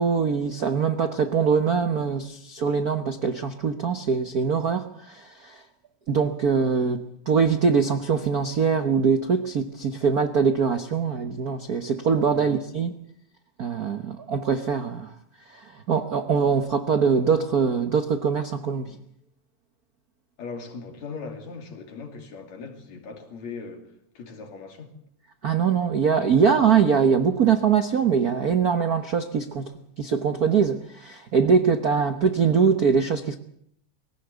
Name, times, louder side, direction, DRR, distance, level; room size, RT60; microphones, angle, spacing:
voice 1, 0.0-5.6 6.1-12.9 13.6-15.1 15.5-19.0 25.4-29.7 30.0-33.4, right 6 dB, 85° right, 0.8 m, -23 dB
voice 2, 20.4-23.9 24.2-24.9, left 4 dB, 65° left, 3.8 m, -39 dB
22.5 x 16.5 x 8.1 m
omnidirectional pair, 3.4 m